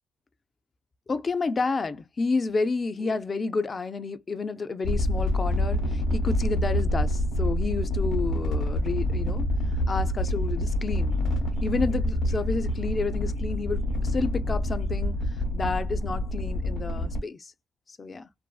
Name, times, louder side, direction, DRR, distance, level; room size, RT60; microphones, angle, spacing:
voice 1, 1.1-9.5 9.9-11.2 11.6-15.1 15.5-17.5 18.0-18.3, left 4 dB, 35° left, 0.3 m, -30 dB
sound 1, 4.8-17.2, left 1 dB, 80° left, 0.8 m, -27 dB
2.5 x 2.3 x 2.2 m
cardioid pair, 90°, 0 cm